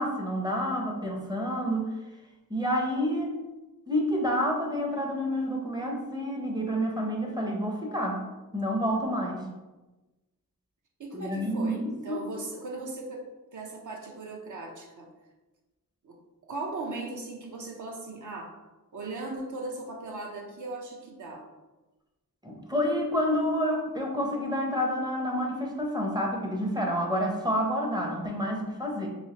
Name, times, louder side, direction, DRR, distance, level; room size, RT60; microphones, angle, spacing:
voice 1, 0.0-1.9 2.5-3.4 3.9-8.2 8.5-9.4 11.1-12.3 22.4-29.1, equal, 10° right, 0 dB, 0.6 m, -29 dB
voice 2, 11.0-13.3 13.5-15.1 16.0-16.2 16.5-18.5 18.9-21.5, right 2 dB, 60° right, 0 dB, 0.6 m, -38 dB
3.2 x 3.1 x 2.8 m, 1.1 s
wide cardioid pair, 100°, 35 cm